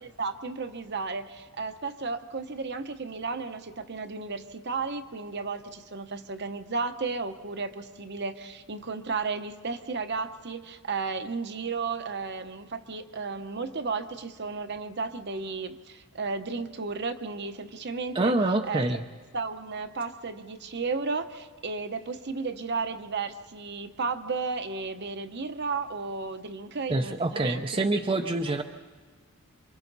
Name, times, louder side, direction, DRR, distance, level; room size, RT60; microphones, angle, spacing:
voice 1, 0.0-18.4 18.7-18.9 19.3-28.0, right 4 dB, 50° right, 8 dB, 0.9 m, -33 dB
voice 2, 18.1-19.0 26.9-28.6, right 2 dB, 25° right, 5 dB, 0.6 m, -26 dB
27.5 x 24.0 x 4.1 m, 1.5 s
head